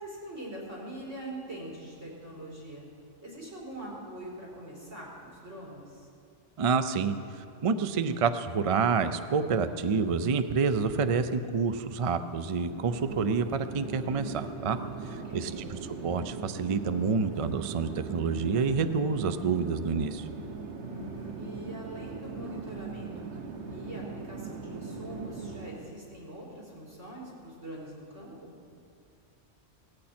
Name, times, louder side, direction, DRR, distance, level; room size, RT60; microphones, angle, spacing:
voice 1, 0.0-2.8 3.2-6.1 15.1-15.7 20.8-23.3 23.7-28.5, right 1 dB, 85° right, -3 dB, 4.8 m, -43 dB
voice 2, 6.6-14.8 15.1-20.3, right 5 dB, 45° right, 10 dB, 0.5 m, -28 dB
Chatter / Fixed-wing aircraft airplane, 12.5-26.0, right 4 dB, 65° right, 1.3 m, -40 dB
18.0 x 15.0 x 4.4 m, 2.5 s
omnidirectional pair, 1.2 m